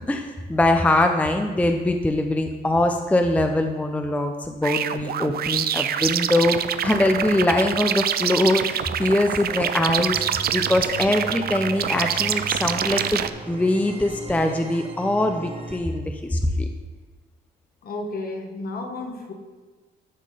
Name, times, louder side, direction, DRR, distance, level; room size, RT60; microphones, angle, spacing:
voice 1, 0.0-6.6 6.8-10.2 10.5-16.7, left 1 dB, 5° left, 5 dB, 0.5 m, -22 dB
sound 1, 4.6-13.3, right 9 dB, 50° right, 0.4 m, -26 dB
sound 2, 10.1-15.8, right 4 dB, 30° right, 1.0 m, -38 dB
voice 2, 17.8-19.3, left 2 dB, 50° left, 3 dB, 1.3 m, -32 dB
11.0 x 3.7 x 4.9 m, 1.4 s
cardioid pair, 75°, 20 cm